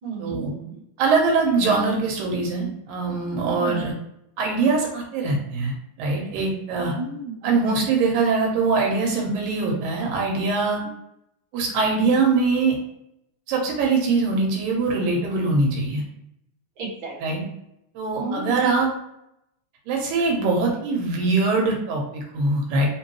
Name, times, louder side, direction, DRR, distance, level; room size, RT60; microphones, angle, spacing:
voice 1, 0.0-0.8 3.5-3.9 6.7-7.6 16.8-17.4 18.2-18.6, right 3 dB, 45° right, -6 dB, 2.1 m, -33 dB
voice 2, 1.0-3.9 4.4-6.9 7.4-10.8 11.5-12.8 13.5-16.0 17.2-17.4 18.0-18.9 19.9-22.9, right 3 dB, 85° right, 0 dB, 2.6 m, -22 dB
5.0 x 2.9 x 3.0 m, 0.81 s
omnidirectional pair, 3.9 m